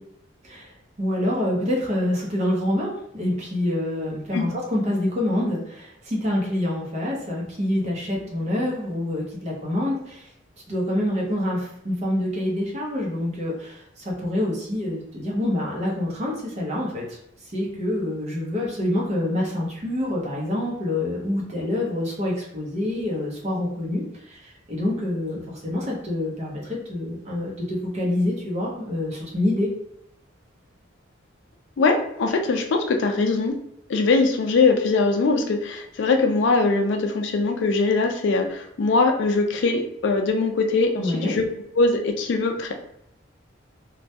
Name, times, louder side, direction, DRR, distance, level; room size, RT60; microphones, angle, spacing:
voice 1, 0.4-10.3 10.7-29.7 41.0-41.3, left 1 dB, 35° right, -3 dB, 0.6 m, -26 dB
voice 2, 31.8-33.5 33.9-41.4 41.8-42.7, left 3 dB, 65° left, 3 dB, 0.3 m, -21 dB
2.2 x 2.1 x 2.7 m, 0.75 s
head